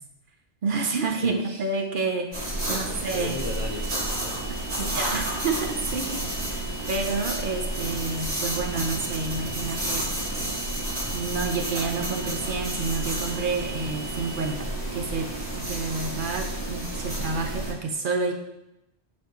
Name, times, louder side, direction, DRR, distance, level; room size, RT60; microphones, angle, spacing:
voice 1, 0.6-3.4 4.5-10.1 11.1-18.3, right 4 dB, 55° right, 3 dB, 0.8 m, -29 dB
voice 2, 1.2-1.6 2.6-4.4 4.8-5.0, left 4 dB, 50° left, 2 dB, 0.4 m, -37 dB
sound 1, 2.3-17.7, right 1 dB, 75° right, 2.9 m, -31 dB
sound 2, 3.1-14.5, right 3 dB, 75° left, 1.1 m, -42 dB
9.5 x 4.3 x 3.0 m, 0.88 s
omnidirectional pair, 1.1 m